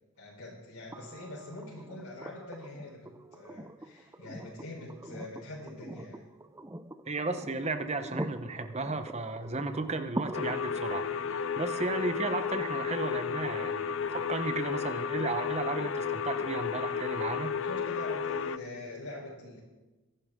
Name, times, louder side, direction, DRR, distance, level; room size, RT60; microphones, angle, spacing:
voice 1, 0.2-6.3 17.4-19.6, left 1 dB, 80° left, -6 dB, 4.1 m, -44 dB
sound 1, 0.9-14.9 16.6-16.7, right 1 dB, 15° right, 0.4 m, -45 dB
voice 2, 7.1-11.0 11.6-17.5, right 3 dB, 30° right, 9 dB, 0.9 m, -34 dB
sound 2, 10.3-18.6, left 6 dB, 60° left, 0.5 m, -33 dB
24.0 x 11.0 x 3.7 m, 1.1 s
head